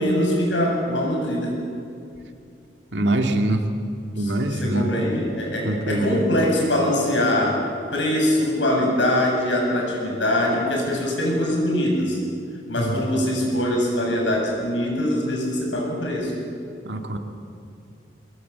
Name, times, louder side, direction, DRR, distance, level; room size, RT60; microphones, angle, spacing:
voice 1, 0.0-1.6 4.2-7.7 7.9-12.2 12.7-16.3, left 1 dB, 85° left, 0 dB, 7.8 m, -23 dB
voice 2, 2.9-3.7 4.2-4.9 5.6-6.2 12.8-13.0 16.8-17.2, right 1 dB, 75° right, 5 dB, 2.2 m, -23 dB
22.5 x 21.5 x 8.5 m, 2.5 s
head